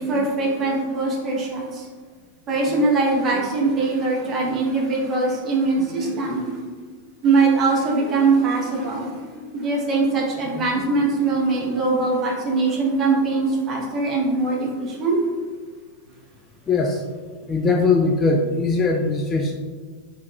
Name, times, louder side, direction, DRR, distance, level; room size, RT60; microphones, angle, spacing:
voice 1, 0.0-1.9 2.5-6.6 7.2-15.2, right 3 dB, 30° right, -2 dB, 0.9 m, -22 dB
voice 2, 16.7-17.0 17.5-19.6, left 3 dB, 20° left, 2 dB, 0.3 m, -20 dB
4.7 x 3.4 x 2.3 m, 1.5 s
figure-of-eight pair, 90°, 0 cm